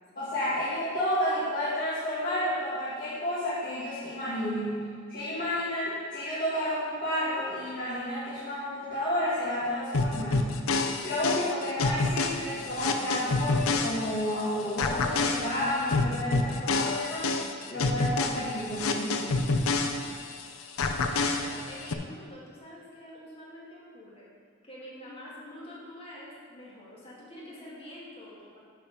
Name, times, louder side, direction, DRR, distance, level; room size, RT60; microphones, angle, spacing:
voice 1, 0.2-4.8 5.1-10.5 11.0-17.3 17.7-19.6, left 1 dB, 40° left, -12 dB, 2.0 m, -31 dB
sound 1, 9.9-14.4 14.8-20.4 20.8-21.9, left 3 dB, 80° left, 0.6 m, -28 dB
voice 2, 21.1-24.3 24.6-28.6, left 1 dB, 25° left, -6 dB, 2.1 m, -46 dB
10.5 x 4.7 x 5.3 m, 2.1 s
head